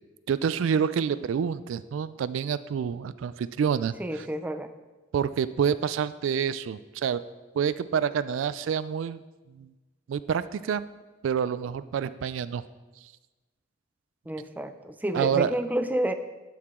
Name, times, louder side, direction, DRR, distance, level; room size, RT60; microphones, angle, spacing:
voice 1, 0.3-4.3 5.1-7.2 7.5-9.2 9.5-9.7 10.1-10.9 11.2-12.6 15.1-15.5, right 7 dB, 80° right, 15 dB, 0.3 m, -27 dB
voice 2, 4.0-4.7 14.3-16.1, right 1 dB, 10° right, 9 dB, 0.4 m, -29 dB
12.5 x 4.8 x 3.7 m, 1.2 s
head